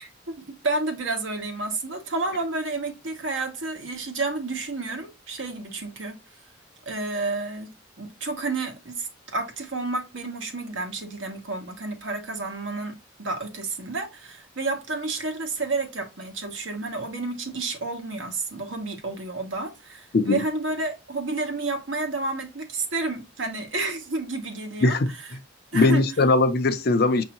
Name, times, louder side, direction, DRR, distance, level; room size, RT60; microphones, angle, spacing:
voice 1, 0.0-6.2 6.9-7.7 8.0-25.3 25.7-26.0, right 3 dB, 70° right, 1.1 m, -30 dB
voice 2, 25.7-27.2, left 3 dB, 50° left, 0.5 m, -20 dB
6.2 x 2.7 x 2.9 m
head